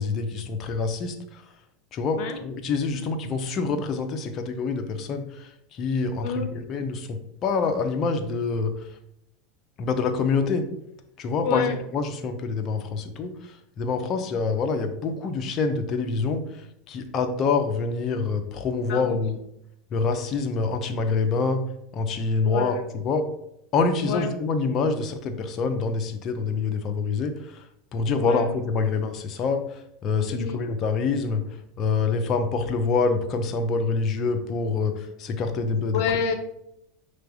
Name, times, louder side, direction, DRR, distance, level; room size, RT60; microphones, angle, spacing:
voice 1, 0.0-1.4 1.9-9.0 9.8-10.7 11.2-19.4 19.9-21.6 21.9-23.2 23.7-27.7 27.9-31.4 31.8-36.0, left 4 dB, 35° left, 6 dB, 0.8 m, -26 dB
voice 2, 11.4-11.7 18.9-19.1 22.4-22.9 24.1-24.2 28.2-28.5 30.3-30.6 35.9-36.3, left 6 dB, 55° left, 6 dB, 1.1 m, -28 dB
5.7 x 3.3 x 5.4 m, 0.78 s
supercardioid pair, 130°, 0 cm